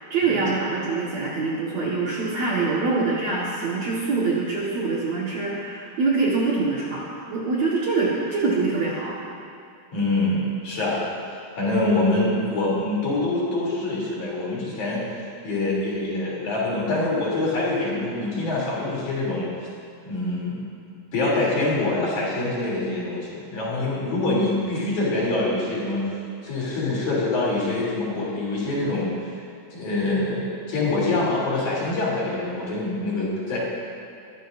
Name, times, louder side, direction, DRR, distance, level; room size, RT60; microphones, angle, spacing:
voice 1, 0.1-7.0 7.3-9.2, right 3 dB, 55° right, -6 dB, 2.3 m, -24 dB
voice 2, 9.9-11.0 11.3-19.5 20.0-20.6 21.1-26.0 26.4-29.2 29.7-33.6, left 2 dB, 50° left, -6 dB, 4.3 m, -25 dB
21.5 x 14.0 x 2.6 m, 2.6 s
omnidirectional pair, 4.5 m